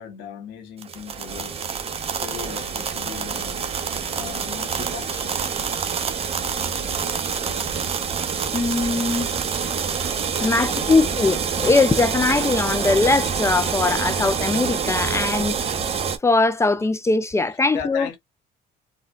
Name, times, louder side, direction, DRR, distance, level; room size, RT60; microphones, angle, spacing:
voice 1, 0.0-1.5 2.1-3.7 4.1-5.4 10.3-11.2 14.0-14.3 17.7-18.2, left 8 dB, 85° left, 1.0 m, -37 dB
sound 1, 0.8-16.2, right 6 dB, 35° right, 0.7 m, -26 dB
voice 2, 8.5-9.3 10.4-15.6 15.9-18.1, left 3 dB, 15° left, 0.3 m, -21 dB
3.9 x 2.2 x 2.3 m
cardioid pair, 110°, 17 cm